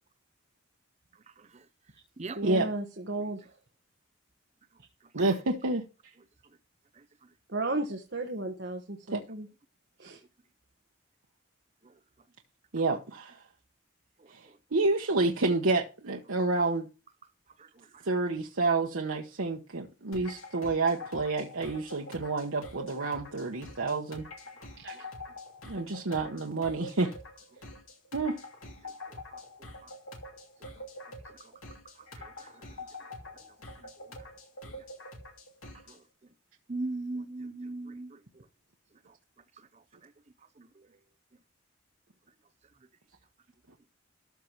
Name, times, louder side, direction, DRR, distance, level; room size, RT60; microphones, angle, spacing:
voice 1, 2.4-3.5 7.5-9.5 10.0-10.2 24.8-25.0, right 2 dB, 55° right, 1.3 m, -34 dB
voice 2, 5.1-5.8 9.1-9.2 12.7-13.4 14.3-14.4 14.7-16.9 18.0-24.2 25.6-27.1 28.1-28.4, right 3 dB, 80° right, 1.1 m, -29 dB
voice 3, 6.9-7.3 11.8-11.9 14.2-14.6 17.6-18.0 24.9-25.0 28.8-29.4 29.8-29.9 30.6-30.9 31.3-31.6 32.1-32.9 33.8-34.3 34.6-34.8 35.9-36.0 36.7-38.5 39.1-39.2 39.6-40.1 40.6-40.9, right 2 dB, 35° right, 0.6 m, -42 dB
sound 1, 20.1-36.0, left 1 dB, 85° left, 2.8 m, -46 dB
13.5 x 4.6 x 5.5 m
head